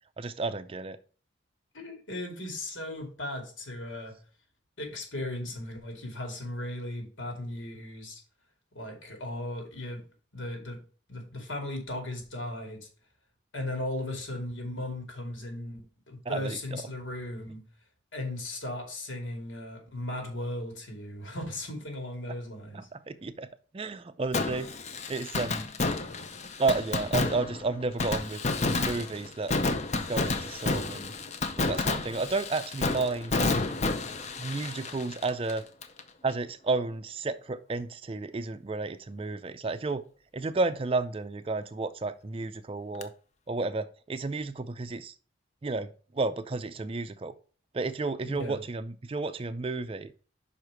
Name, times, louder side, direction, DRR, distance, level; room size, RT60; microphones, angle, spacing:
voice 1, 0.2-1.0 16.3-16.8 22.7-23.5 23.7-24.7 25.1-25.7 26.6-29.5 29.9-31.1 31.6-33.3 34.4-35.6 36.2-40.0 40.3-43.1 43.5-45.1 45.6-47.3 47.7-50.1, right 3 dB, 30° right, 12 dB, 0.4 m, -32 dB
voice 2, 1.7-4.1 4.8-8.2 8.7-10.0 10.3-10.8 11.1-12.9 13.5-17.6 18.1-22.9 48.2-48.6, left 1 dB, 80° left, 2 dB, 2.5 m, -37 dB
Fireworks, 24.3-36.0 36.3-36.4 43.0-43.1, left 3 dB, 35° left, 0.6 m, -30 dB
5.7 x 4.7 x 4.9 m, 0.39 s
head